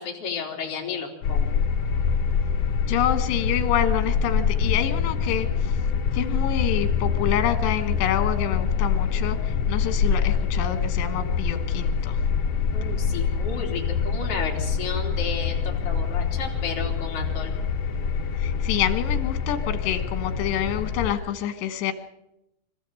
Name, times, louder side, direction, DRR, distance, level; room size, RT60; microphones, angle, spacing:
voice 1, 0.0-1.5 12.7-17.5, left 5 dB, 35° left, -1 dB, 4.0 m, -32 dB
sound 1, 1.2-21.1, left 6 dB, 70° left, 1.5 m, -25 dB
voice 2, 2.9-5.7 6.1-12.2 18.4-21.9, left 10 dB, 85° left, 9 dB, 3.5 m, -27 dB
26.0 x 14.5 x 7.8 m, 0.87 s
omnidirectional pair, 4.8 m